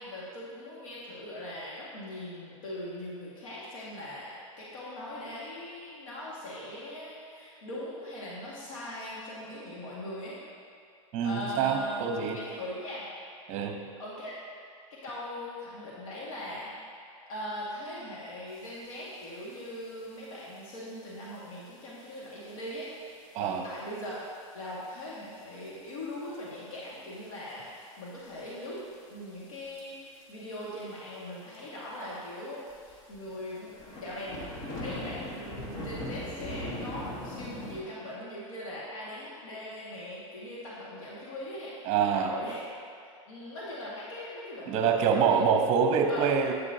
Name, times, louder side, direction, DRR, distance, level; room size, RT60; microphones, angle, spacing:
voice 1, 0.0-10.4 11.2-13.1 14.0-14.4 14.9-16.7 17.3-24.3 24.5-28.8 29.1-34.4 34.7-42.6 43.0-45.4 46.1-46.4, left 1 dB, 75° left, -7 dB, 1.9 m, -40 dB
voice 2, 11.1-12.4 13.5-13.8 23.3-23.6 32.0-32.2 41.9-42.3 44.7-46.5, right 6 dB, 40° right, 4 dB, 0.9 m, -26 dB
sound 1, 19.1-19.2 19.5-19.9 20.6-20.7 21.4-21.5 22.1-22.2 22.5-22.6 22.8-22.9 24.0-24.3 24.7-24.8 25.7-25.8 26.3-26.8 27.1-27.3 27.8-28.5 29.5-29.8 30.1-30.2 30.5-30.6 30.8-30.9 31.5-31.6 32.0-32.1 32.7-37.8, left 1 dB, 40° left, 1.2 m, -39 dB
8.1 x 7.9 x 2.8 m, 2.4 s
hypercardioid pair, 130°, 17 cm